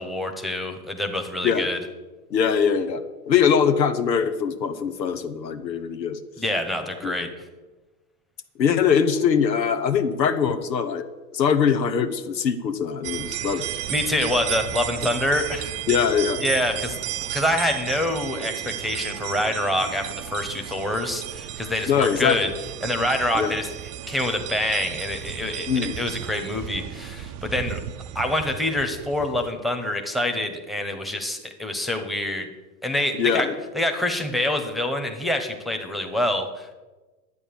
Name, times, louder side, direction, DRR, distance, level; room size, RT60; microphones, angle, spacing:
voice 1, 0.0-1.8 6.4-7.3 13.4-13.6 13.9-15.7 16.4-17.0 17.2-22.5 22.8-23.7 24.1-27.8 28.1-32.5 32.8-33.5 33.7-36.8, left 1 dB, ahead, 4 dB, 1.3 m, -26 dB
voice 2, 2.3-6.2 7.0-7.1 8.6-11.1 11.3-13.8 15.9-16.4 21.9-22.5 23.3-23.5 25.7-26.0 33.1-33.5, left 7 dB, 85° left, 9 dB, 1.4 m, -22 dB
sound 1, 13.0-29.5, right 12 dB, 30° right, 0.7 m, -34 dB
11.0 x 8.8 x 7.1 m, 1.2 s
hypercardioid pair, 115°, 49 cm